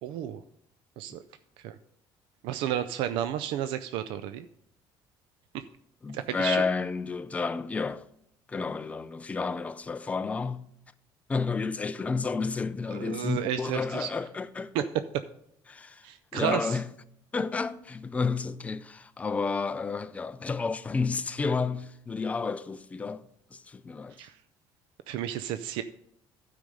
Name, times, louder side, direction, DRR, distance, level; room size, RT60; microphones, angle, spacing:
voice 1, 0.0-0.4 1.0-1.2 1.6-1.8 2.4-4.5 5.5-5.6 6.1-6.6 12.9-14.1 14.7-14.8 16.0-16.8 24.2-24.4 25.1-25.8, right 10 dB, 85° right, 0.4 m, -32 dB
voice 2, 6.0-8.1 8.5-10.6 11.3-14.9 15.7-16.1 16.3-16.9 17.3-24.2, left 4 dB, 15° left, 0.4 m, -31 dB
12.5 x 5.0 x 5.3 m
cardioid pair, 155°, 9 cm